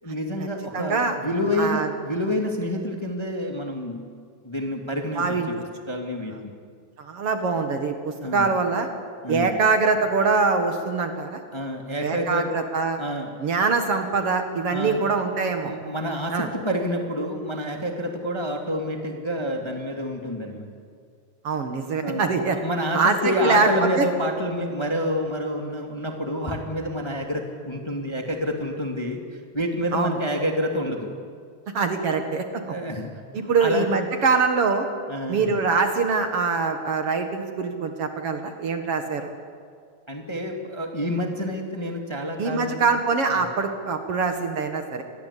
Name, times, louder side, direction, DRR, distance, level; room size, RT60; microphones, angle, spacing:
voice 1, 0.0-4.0 4.4-5.5 5.9-6.3 8.2-8.5 9.2-9.6 11.5-12.6 13.0-13.3 14.7-15.0 15.6-20.7 22.0-29.2 29.5-31.1 32.7-33.1 33.4-33.9 35.1-35.6 40.1-42.8 43.3-43.5 45.0-45.1, equal, 10° left, 3 dB, 2.1 m, -28 dB
voice 2, 0.7-1.1 1.6-1.9 5.2-5.5 7.0-8.9 9.3-11.4 12.0-13.0 13.4-15.7 16.3-16.5 21.4-22.6 22.9-23.7 24.0-24.1 29.9-30.2 31.7-32.7 33.3-34.9 35.3-39.3 42.4-45.0, right 4 dB, 55° right, 6 dB, 2.4 m, -23 dB
27.5 x 21.0 x 8.4 m, 2.1 s
omnidirectional pair, 3.3 m